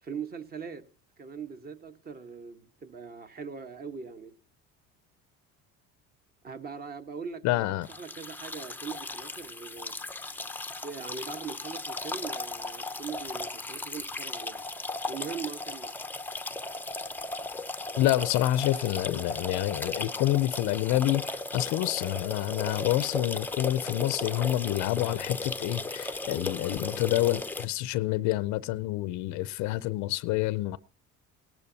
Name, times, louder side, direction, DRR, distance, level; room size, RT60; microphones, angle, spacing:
voice 1, 0.0-0.8 1.2-4.3 6.4-9.9 10.8-14.6 15.1-15.9, right 6 dB, 30° right, 1.3 m, -41 dB
voice 2, 7.4-7.9 18.0-30.8, left 15 dB, 70° left, 0.6 m, -28 dB
sound 1, 7.8-27.7, left 2 dB, 5° left, 0.6 m, -36 dB
18.0 x 12.0 x 2.8 m
cardioid pair, 110°, 30 cm